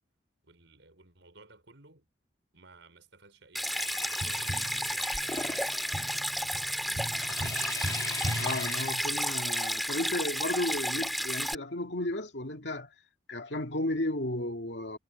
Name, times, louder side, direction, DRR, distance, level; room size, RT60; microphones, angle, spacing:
voice 1, 0.4-2.0 2.5-5.9 6.3-7.9, right 3 dB, 80° right, 5.4 m, -56 dB
Stream, 3.6-11.6, equal, ahead, 2.0 m, -32 dB
sound 1, 3.8-6.9 7.1-9.2, left 3 dB, 20° left, 1.5 m, -41 dB
Tap, 4.2-9.5 12.1-12.2, equal, 45° right, 3.9 m, -39 dB
voice 2, 8.3-12.9 13.3-15.0, left 1 dB, 65° left, 2.3 m, -33 dB
head